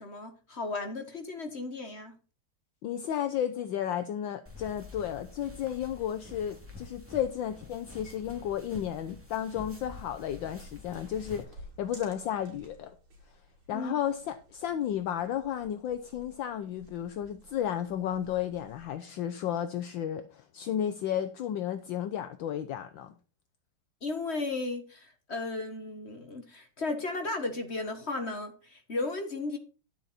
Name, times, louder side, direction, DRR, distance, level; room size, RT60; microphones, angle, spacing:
voice 1, 0.0-2.1 13.7-13.9 24.0-29.6, left 3 dB, 35° left, 1.4 m, -35 dB
voice 2, 2.8-12.9 13.7-23.1, left 10 dB, 70° left, 1.4 m, -33 dB
sound 1, 4.5-11.4, left 3 dB, 5° right, 2.6 m, -48 dB
sound 2, 10.2-18.9, right 1 dB, 75° right, 3.3 m, -55 dB
11.5 x 7.9 x 4.3 m
omnidirectional pair, 2.3 m